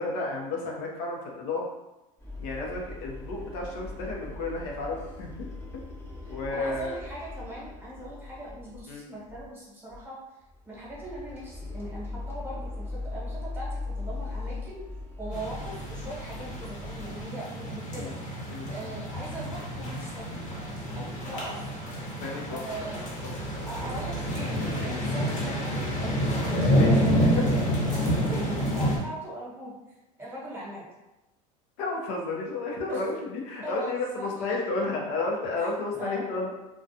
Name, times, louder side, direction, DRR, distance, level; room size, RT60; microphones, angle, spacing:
voice 1, 0.0-1.7 2.4-5.5 6.2-7.0 8.9-9.0 17.9-18.1 18.5-18.7 22.2-22.9 23.5-23.7 26.5-26.9 27.2-27.5 31.8-36.5, left 3 dB, 75° left, -1 dB, 0.7 m, -32 dB
sound 1, 2.2-8.9 9.3-9.6 9.9-10.0 10.5-17.2, left 2 dB, 15° left, 0.7 m, -39 dB
voice 2, 6.3-10.2 10.7-14.8 15.2-18.1 18.7-20.5 20.9-21.7 22.5-23.0 23.7-26.2 26.8-27.6 27.9-29.7 30.2-30.9 32.9-33.0 33.6-34.4 35.6-36.3, right 1 dB, 10° right, -6 dB, 1.0 m, -40 dB
sound 2, 15.3-29.0, equal, 50° left, 0.9 m, -28 dB
2.4 x 2.2 x 2.6 m, 0.97 s
supercardioid pair, 105°, 17 cm